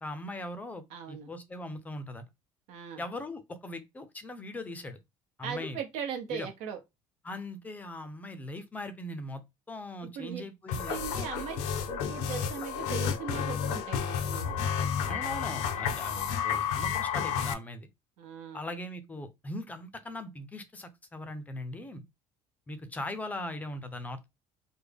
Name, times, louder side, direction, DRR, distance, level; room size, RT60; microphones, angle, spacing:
voice 1, 0.0-2.2 3.0-5.0 5.4-5.8 6.3-6.5 7.2-9.4 9.7-10.9 15.1-17.9 18.5-22.0 22.7-24.3, left 1 dB, 15° left, 0.4 m, -40 dB
voice 2, 0.9-1.3 2.7-3.0 5.4-6.8 10.2-10.4 10.9-14.6 18.2-18.6, right 7 dB, 90° right, 0.9 m, -39 dB
sound 1, 10.7-17.5, left 7 dB, 85° left, 0.5 m, -31 dB
3.4 x 2.1 x 3.3 m
cardioid pair, 150°, 11 cm